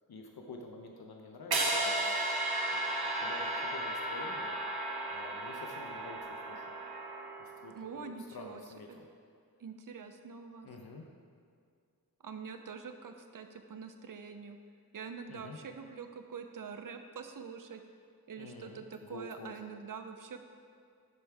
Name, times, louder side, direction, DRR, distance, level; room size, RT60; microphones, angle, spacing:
voice 1, 0.1-2.1 2.7-4.6 5.1-6.6 7.4-9.1 10.6-11.1 15.3-15.6 18.4-19.5, left 2 dB, 75° left, 2 dB, 0.7 m, -48 dB
sound 1, 1.5-7.6, right 2 dB, 75° right, 1.0 m, -34 dB
voice 2, 7.7-8.6 8.9-9.0 9.6-10.7 12.2-14.6 14.9-17.8 18.3-20.4, right 6 dB, 60° right, 7 dB, 0.6 m, -45 dB
10.5 x 4.7 x 3.4 m, 2.2 s
wide cardioid pair, 60°, 38 cm